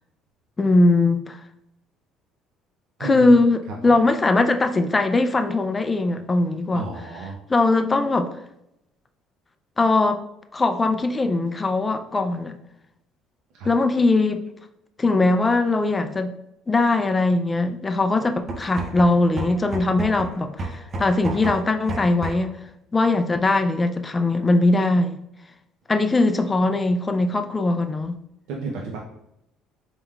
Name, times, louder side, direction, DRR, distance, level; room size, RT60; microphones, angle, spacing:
voice 1, 0.6-1.4 3.0-6.9 7.5-8.3 9.8-10.2 10.5-12.6 13.6-14.4 15.0-16.3 16.7-22.5 22.9-25.2 25.9-28.2, left 2 dB, 20° left, 7 dB, 0.3 m, -20 dB
voice 2, 3.0-3.4 3.8-4.0 6.7-7.4 13.5-13.7 28.5-29.0, right 3 dB, 75° right, -2 dB, 0.6 m, -31 dB
sound 1, 18.5-22.6, right 2 dB, 35° right, 0.6 m, -32 dB
4.2 x 3.6 x 2.3 m, 0.82 s
cardioid pair, 135°, 0 cm